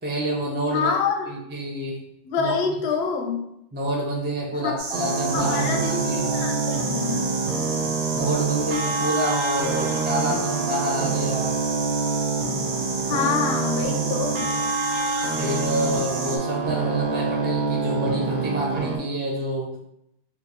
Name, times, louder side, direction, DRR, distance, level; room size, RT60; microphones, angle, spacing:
voice 1, 0.0-0.9 1.3-2.0 2.4-2.5 3.7-6.5 8.1-11.5 15.3-19.7, right 1 dB, 15° right, -2 dB, 0.4 m, -28 dB
voice 2, 0.7-1.3 2.2-3.4 4.6-4.8 5.3-7.3 13.1-14.5, left 5 dB, 65° left, 3 dB, 0.7 m, -26 dB
sound 1, 4.8-16.4, right 3 dB, 85° right, 1.0 m, -32 dB
sound 2, 4.9-19.0, right 4 dB, 60° right, 0.6 m, -26 dB
2.9 x 2.2 x 4.1 m, 0.80 s
omnidirectional pair, 1.2 m